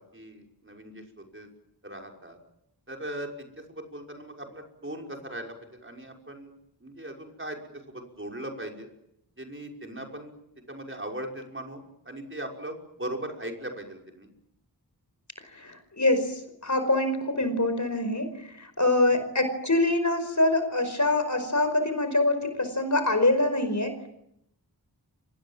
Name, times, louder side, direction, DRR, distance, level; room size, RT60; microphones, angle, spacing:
voice 1, 0.1-1.5 1.8-2.4 2.9-6.5 6.8-7.6 7.9-8.9 9.4-10.3 10.7-14.3 19.1-19.3, right 1 dB, 30° right, 1 dB, 5.8 m, -39 dB
voice 2, 15.5-24.0, left 2 dB, 45° left, 9 dB, 5.1 m, -25 dB
29.5 x 26.0 x 7.5 m, 0.78 s
wide cardioid pair, 60°, 39 cm